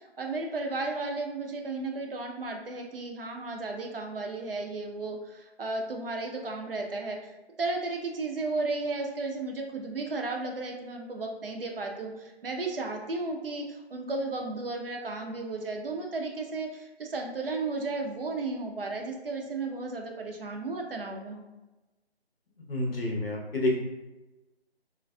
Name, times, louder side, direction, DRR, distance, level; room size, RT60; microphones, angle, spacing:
voice 1, 0.0-21.4, right 3 dB, 60° right, 2 dB, 0.6 m, -34 dB
voice 2, 22.7-23.8, left 1 dB, 60° left, -1 dB, 0.9 m, -28 dB
3.7 x 2.5 x 2.2 m, 1.1 s
figure-of-eight pair, 165°, 33 cm